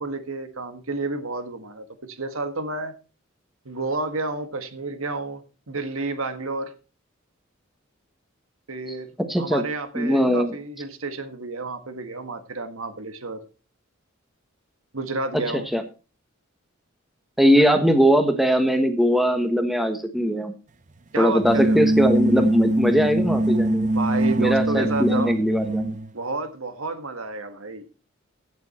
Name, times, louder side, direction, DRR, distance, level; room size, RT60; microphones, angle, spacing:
voice 1, 0.0-2.9 3.6-6.7 8.7-9.1 9.4-13.4 14.9-15.7 21.1-21.8 23.9-25.4 26.1-27.8, right 3 dB, 85° right, 1.7 m, -30 dB
voice 2, 9.3-9.6 9.9-10.5 15.7-15.8 17.4-20.5 21.2-23.9 24.4-26.0, equal, ahead, 1.3 m, -20 dB
sound 1, 21.4-26.1, right 1 dB, 35° right, 0.6 m, -23 dB
15.5 x 7.1 x 4.3 m
head